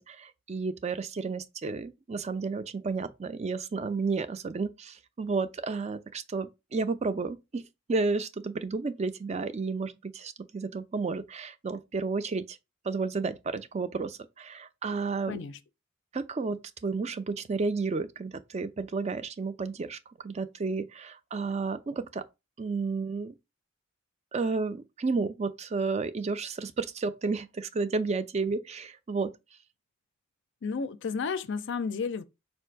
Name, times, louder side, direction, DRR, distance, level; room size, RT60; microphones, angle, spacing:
voice 1, 0.0-7.6 7.9-12.6 12.9-15.4 16.1-20.0 20.2-22.2 22.6-23.3 24.3-29.3, right 4 dB, 30° right, 0.4 m, -32 dB
voice 2, 15.3-15.6 30.6-32.2, left 5 dB, 60° left, 0.4 m, -32 dB
4.5 x 2.5 x 4.5 m
head